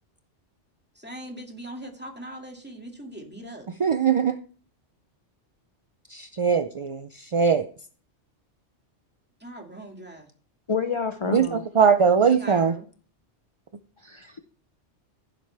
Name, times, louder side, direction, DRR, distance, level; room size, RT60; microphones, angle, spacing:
voice 1, 0.9-3.7 9.4-10.3 12.4-12.9, right 1 dB, 10° right, 2.3 m, -40 dB
voice 2, 3.8-4.4 6.1-7.7 11.3-12.7, right 6 dB, 45° right, 0.4 m, -21 dB
voice 3, 10.7-11.7 14.0-14.4, left 5 dB, 35° left, 0.6 m, -29 dB
15.5 x 7.6 x 3.4 m
omnidirectional pair, 1.2 m